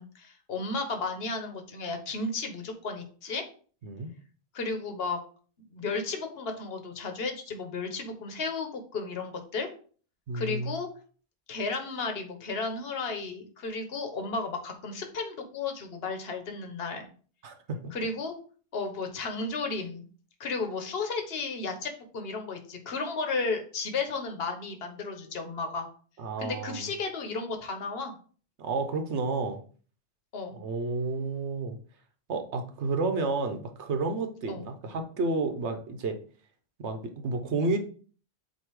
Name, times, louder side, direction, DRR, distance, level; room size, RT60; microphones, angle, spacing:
voice 1, 0.0-3.5 4.5-5.2 5.7-9.7 10.3-10.9 11.5-17.1 17.9-18.3 18.7-20.1 20.4-25.9 26.4-28.1 30.3-30.6 34.5-34.6, left 4 dB, 60° left, 5 dB, 1.3 m, -33 dB
voice 2, 3.8-4.1 10.3-10.8 17.4-17.9 26.2-26.9 28.6-29.6 30.5-31.8 32.3-36.2 36.8-37.8, right 3 dB, 80° right, 6 dB, 1.1 m, -31 dB
8.2 x 2.8 x 4.7 m, 0.42 s
omnidirectional pair, 1.1 m